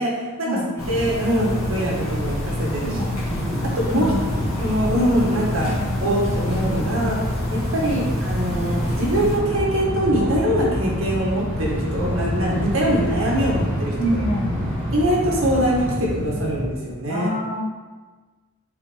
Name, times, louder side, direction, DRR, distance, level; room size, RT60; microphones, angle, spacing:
voice 1, 0.0-0.5 0.9-3.0 3.8-7.2 7.5-13.9 14.9-17.3, equal, 70° right, -3 dB, 1.9 m, -23 dB
sound 1, 0.8-9.4, left 1 dB, 80° left, 2.0 m, -28 dB
sound 2, 0.8-15.9, equal, 10° left, 1.6 m, -33 dB
sound 3, 3.7-16.7, equal, 35° right, 1.6 m, -28 dB
voice 2, 4.0-4.4 7.8-7.9 14.0-14.5 17.1-17.6, equal, 35° left, -5 dB, 1.6 m, -26 dB
5.7 x 4.2 x 5.2 m, 1.3 s
head